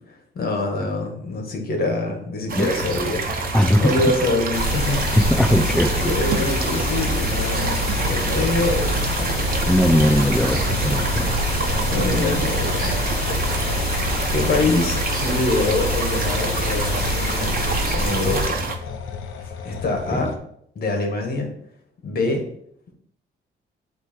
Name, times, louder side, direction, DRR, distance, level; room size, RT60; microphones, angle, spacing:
voice 1, 0.1-3.3 3.8-5.1 6.1-9.3 11.9-13.5 13.8-18.6 19.4-20.3 20.8-21.5 22.0-22.4, left 2 dB, 50° left, 2 dB, 1.9 m, -25 dB
sound 1, 2.5-18.8, right 4 dB, 45° right, 1.1 m, -28 dB
sound 2, 2.8-20.4, left 5 dB, 90° left, 0.8 m, -34 dB
voice 2, 3.5-3.9 5.3-6.1 9.7-11.5 20.1-20.2, left 1 dB, 5° left, 4 dB, 0.6 m, -20 dB
sound 3, 4.5-18.5, left 1 dB, 30° left, 2.5 m, -25 dB
8.3 x 3.2 x 4.6 m, 0.69 s
cardioid pair, 90°, 20 cm